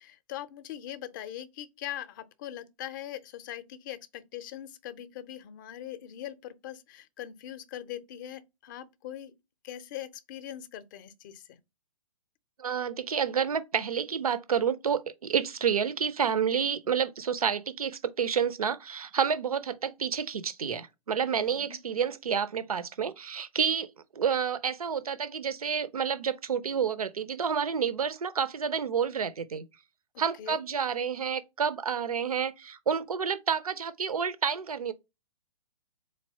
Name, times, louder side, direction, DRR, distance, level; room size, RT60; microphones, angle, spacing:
voice 1, 0.0-9.3 9.6-11.6 21.4-21.8 30.4-30.6, left 11 dB, 35° left, 0.5 m, -41 dB
voice 2, 12.6-23.9 24.2-29.6 30.2-34.9, right 7 dB, 75° right, 0.5 m, -29 dB
4.0 x 3.2 x 2.7 m
figure-of-eight pair, 120°, 19 cm